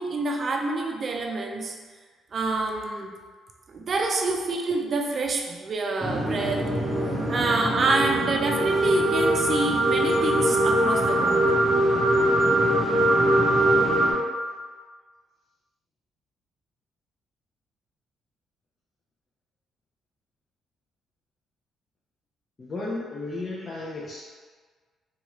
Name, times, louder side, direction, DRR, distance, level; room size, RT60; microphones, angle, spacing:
voice 1, 0.0-1.8 2.3-3.1 3.7-11.5, right 3 dB, 45° right, 2 dB, 0.4 m, -27 dB
sound 1, 6.0-14.1, right 1 dB, 5° right, 0.7 m, -22 dB
voice 2, 22.6-24.3, left 2 dB, 35° left, -6 dB, 0.5 m, -34 dB
2.9 x 2.3 x 2.9 m, 1.5 s
cardioid pair, 90°, 0 cm